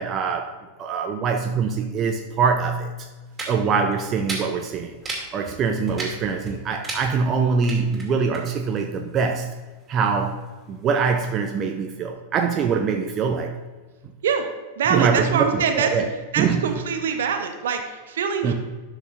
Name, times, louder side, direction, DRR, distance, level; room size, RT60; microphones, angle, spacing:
voice 1, 0.0-2.9 3.5-4.9 5.3-9.5 9.9-13.5 14.9-16.1 16.4-16.6 18.4-18.5, right 5 dB, 30° right, 4 dB, 0.6 m, -23 dB
sound 1, 3.2-11.7, right 2 dB, 15° right, 2.3 m, -36 dB
voice 2, 14.8-15.9 16.3-18.5, right 6 dB, 60° right, 6 dB, 0.9 m, -24 dB
12.0 x 6.4 x 2.6 m, 1.3 s
figure-of-eight pair, 90°, 0 cm